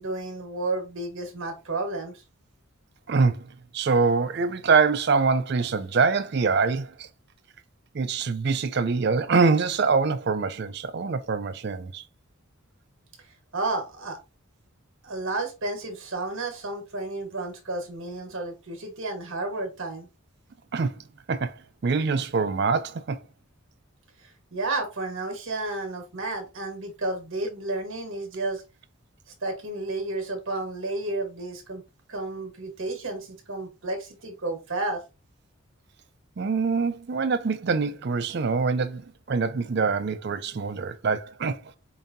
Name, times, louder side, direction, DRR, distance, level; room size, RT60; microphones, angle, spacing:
voice 1, 0.0-2.1 13.5-14.2 15.0-20.1 24.2-28.6 29.4-31.8 32.1-35.0, right 2 dB, 65° right, 1.6 m, -32 dB
voice 2, 3.1-7.1 7.9-12.0 20.7-23.2 36.4-41.6, right 4 dB, 50° right, 0.4 m, -24 dB
5.3 x 2.7 x 2.7 m
head